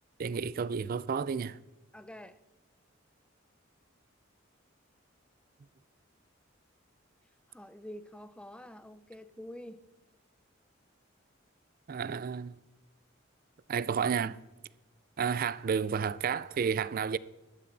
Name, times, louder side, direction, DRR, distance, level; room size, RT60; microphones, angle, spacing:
voice 1, 0.2-1.6 11.9-12.5 13.7-14.4 15.2-17.2, right 6 dB, 45° right, 0.4 m, -31 dB
voice 2, 1.9-2.3 7.5-9.7 15.3-15.4, left 1 dB, 5° left, 0.6 m, -47 dB
12.5 x 12.0 x 4.1 m
head